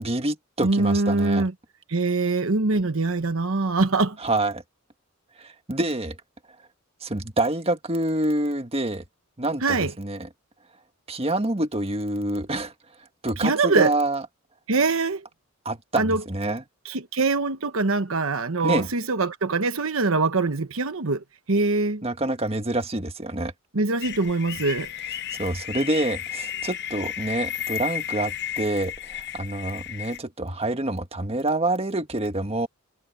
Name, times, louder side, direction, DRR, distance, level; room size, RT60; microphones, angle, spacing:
voice 1, 0.0-1.4 4.2-4.6 5.4-6.2 7.0-9.0 9.4-10.3 11.1-12.7 13.2-14.2 15.6-16.6 18.6-18.9 22.0-23.5 25.4-32.7, right 2 dB, 30° right, 1.7 m, -27 dB
voice 2, 0.6-1.5 1.9-4.2 9.6-9.9 13.4-13.9 14.7-15.2 16.0-16.2 16.8-22.0 23.7-24.9, right 3 dB, 70° right, 1.1 m, -23 dB
sound 1, 24.0-30.2, left 10 dB, 55° left, 0.9 m, -33 dB
head